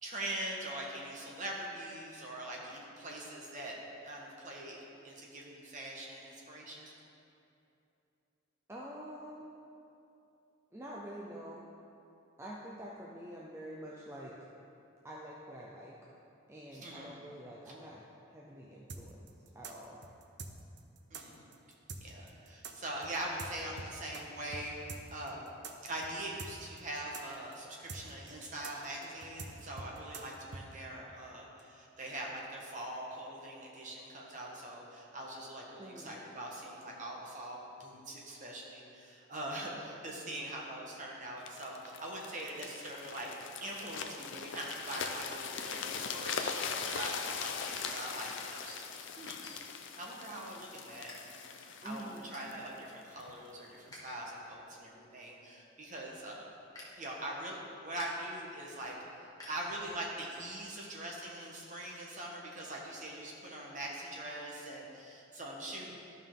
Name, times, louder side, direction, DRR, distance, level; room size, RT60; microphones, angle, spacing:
voice 1, 0.0-4.8 5.0-6.9 16.7-17.2 17.7-17.8 21.1-21.4 22.0-25.4 25.8-43.3 43.6-49.4 50.0-56.4 57.0-65.9, right 1 dB, 40° right, -2 dB, 1.3 m, -43 dB
voice 2, 8.7-9.5 10.7-11.6 12.4-14.3 15.0-15.9 16.5-18.0 18.3-19.3 19.5-20.0 35.8-36.3 51.8-52.3, right 1 dB, 15° right, -4 dB, 0.5 m, -46 dB
sound 1, 18.9-24.2 24.5-24.6 24.9-30.6, right 4 dB, 55° right, 0.6 m, -45 dB
sound 2, 41.5-53.3 53.9-54.1, left 6 dB, 60° left, 0.5 m, -41 dB
sound 3, 46.3-47.2 47.7-47.9 48.5-48.7 49.4-50.0 50.4-51.2 51.5-51.6 51.9-52.6 53.0-54.1 54.4-60.1, left 2 dB, 20° left, 1.5 m, -55 dB
12.5 x 5.4 x 3.7 m, 2.7 s
head